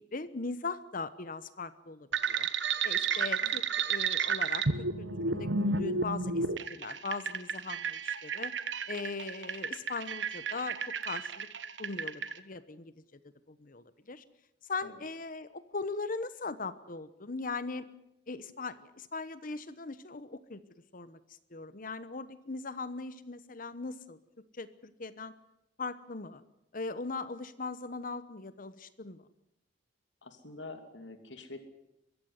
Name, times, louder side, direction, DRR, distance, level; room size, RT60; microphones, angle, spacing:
voice 1, 0.0-2.5 2.8-8.5 8.9-10.8 11.0-11.5 11.8-12.9 13.5-14.2 14.6-17.8 18.3-20.6 20.9-21.2 21.5-24.2 24.5-25.3 25.8-26.4 26.7-29.2, left 3 dB, 50° left, 14 dB, 1.0 m, -39 dB
sound 1, 2.1-12.3, right 5 dB, 75° right, 1.2 m, -32 dB
voice 2, 30.2-31.7, left 2 dB, 75° left, 7 dB, 2.7 m, -46 dB
23.5 x 14.5 x 9.5 m, 0.85 s
head